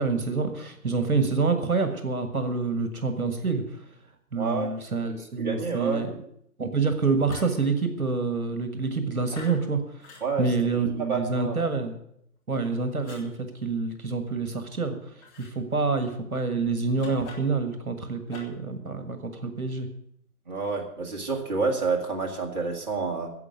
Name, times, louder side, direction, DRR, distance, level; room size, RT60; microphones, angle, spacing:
voice 1, 0.0-3.9 4.3-6.1 6.6-11.9 12.5-13.3 13.6-19.9, right 4 dB, 65° right, 7 dB, 1.8 m, -27 dB
voice 2, 4.4-4.7 5.4-6.1 10.2-10.5 11.0-11.7 20.5-23.3, right 4 dB, 30° right, 0 dB, 1.9 m, -28 dB
sound 1, 7.2-7.6 9.3-9.6 10.0-10.3 13.0-13.3 15.2-15.5 16.9-17.6 18.3-18.7, left 3 dB, 10° left, 1.3 m, -44 dB
11.0 x 7.7 x 9.2 m, 0.72 s
figure-of-eight pair, 145°, 46 cm